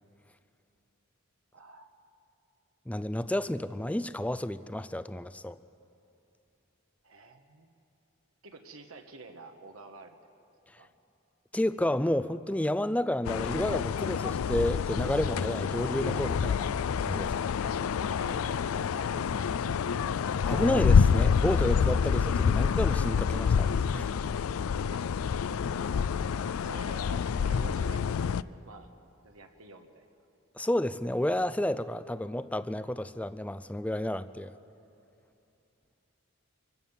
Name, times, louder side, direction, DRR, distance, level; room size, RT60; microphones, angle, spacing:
voice 1, 1.5-1.9 7.0-7.7 8.4-10.2 10.8-10.9 18.0-18.6 19.0-19.8 24.9-25.4 25.7-25.9 26.4-28.9 29.2-30.1, right 2 dB, 90° right, 5 dB, 1.5 m, -49 dB
voice 2, 2.9-5.6 11.5-16.7 17.0-17.5 20.5-24.1 30.6-34.5, left 1 dB, 5° left, 14 dB, 0.4 m, -31 dB
sound 1, 13.2-28.4, left 6 dB, 85° left, 0.4 m, -27 dB
25.0 x 16.5 x 7.3 m, 2.8 s
head